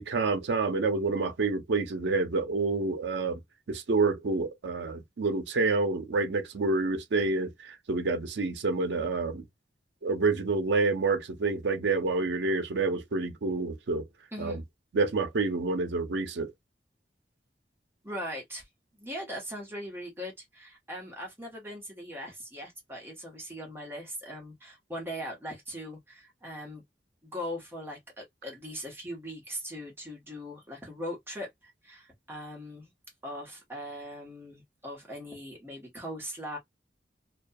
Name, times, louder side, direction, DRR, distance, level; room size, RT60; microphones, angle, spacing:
voice 1, 0.0-3.4 3.7-9.4 10.0-14.1 14.4-14.6 14.9-16.5, right 3 dB, 85° right, 0.5 m, -28 dB
voice 2, 18.0-18.7 18.9-26.8 27.2-32.9 33.2-36.6, equal, 15° right, 0.9 m, -40 dB
2.3 x 2.2 x 2.5 m
head